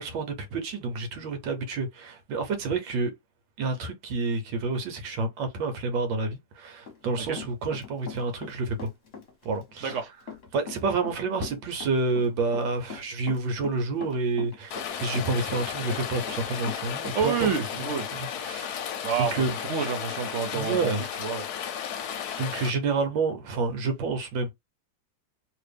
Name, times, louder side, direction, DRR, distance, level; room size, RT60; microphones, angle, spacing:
voice 1, 0.0-3.1 3.6-8.9 9.5-10.0 10.5-17.5 17.8-17.9 18.1-18.8 19.2-19.5 20.5-21.0 22.0-24.5, right 3 dB, 90° right, 1.6 m, -29 dB
Run, 6.9-8.5 8.8-17.6, left 5 dB, 40° left, 1.1 m, -40 dB
Rain, 14.7-22.7, left 8 dB, 65° left, 1.1 m, -34 dB
voice 2, 17.1-18.1 19.0-21.4, right 6 dB, 60° right, 0.8 m, -29 dB
3.0 x 3.0 x 3.3 m
omnidirectional pair, 2.0 m